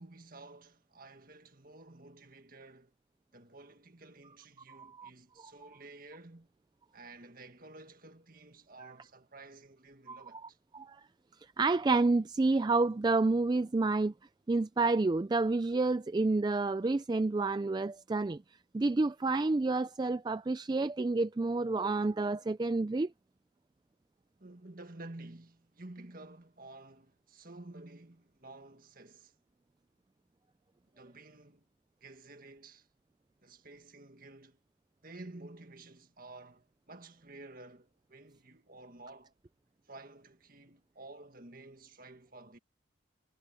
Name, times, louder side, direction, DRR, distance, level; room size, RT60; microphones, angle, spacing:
voice 1, 0.0-2.9 3.3-6.5 6.9-10.6 24.4-29.3 30.9-31.7 32.0-32.9 33.4-34.6 35.0-39.3 39.9-42.6, right 2 dB, 45° right, 1.8 m, -52 dB
voice 2, 4.7-5.1 5.4-5.5 10.1-10.2 10.7-11.0 11.6-14.1 14.5-18.4 18.7-23.1, right 3 dB, 20° right, 0.3 m, -29 dB
head